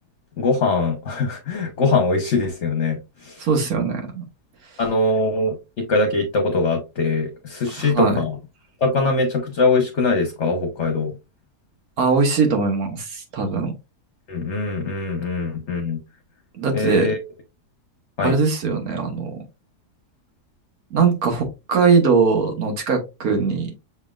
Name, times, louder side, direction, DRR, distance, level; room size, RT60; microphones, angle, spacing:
voice 1, 0.4-3.4 4.8-8.3 8.8-11.1 14.3-16.0 16.7-17.2 18.2-18.3, left 3 dB, 55° left, 1.0 m, -22 dB
voice 2, 3.4-4.2 7.7-8.2 12.0-13.7 16.5-17.1 18.2-19.4 20.9-23.7, right 5 dB, 65° right, 1.6 m, -20 dB
6.3 x 3.5 x 2.3 m
omnidirectional pair, 1.7 m